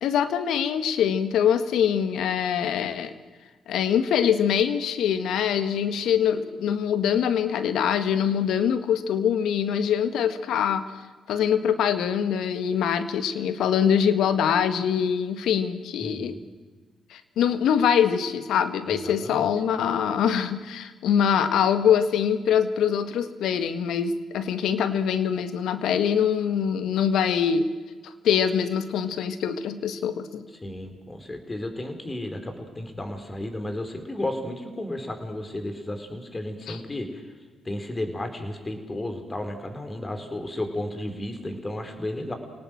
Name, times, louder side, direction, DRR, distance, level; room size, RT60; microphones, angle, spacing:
voice 1, 0.0-3.1 3.7-10.9 11.3-16.4 17.1-27.7 28.0-30.5 36.7-36.8, left 8 dB, 70° left, 11 dB, 1.6 m, -24 dB
voice 2, 16.0-16.4 18.8-19.5 30.6-37.2 37.6-42.3, left 1 dB, 25° left, 6 dB, 4.7 m, -33 dB
27.5 x 18.5 x 7.8 m, 1.4 s
hypercardioid pair, 50°, 0 cm